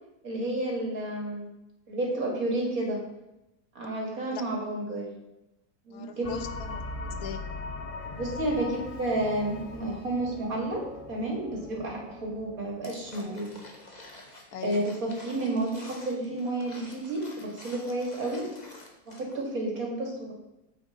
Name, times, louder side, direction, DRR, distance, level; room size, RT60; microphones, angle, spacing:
voice 1, 0.2-1.5 1.9-3.0 3.7-5.1 5.9-6.3 8.2-13.5 14.6-18.5 19.1-20.3, right 1 dB, 70° right, -1 dB, 2.7 m, -31 dB
voice 2, 5.9-7.5 14.5-15.0, left 7 dB, 85° left, 9 dB, 1.3 m, -40 dB
sound 1, 6.2-14.3, left 3 dB, 45° left, 0.4 m, -40 dB
sound 2, 12.8-19.5 19.7-19.8, left 2 dB, 30° left, 1.3 m, -49 dB
9.0 x 8.1 x 3.8 m, 0.92 s
omnidirectional pair, 1.6 m